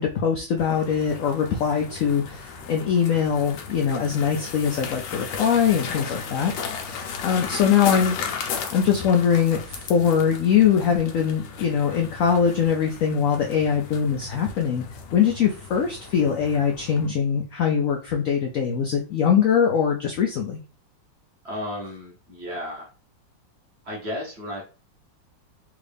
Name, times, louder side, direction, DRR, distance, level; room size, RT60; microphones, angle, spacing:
voice 1, 0.0-6.5 6.8-8.2 8.7-14.8 15.1-20.6, left 7 dB, 70° left, 2 dB, 0.7 m, -22 dB
sound 1, 0.6-17.1, left 6 dB, 85° left, 1.4 m, -36 dB
voice 2, 21.4-22.9 23.8-24.6, left 1 dB, 45° right, -2 dB, 1.1 m, -33 dB
3.6 x 2.5 x 3.3 m, 0.35 s
omnidirectional pair, 1.9 m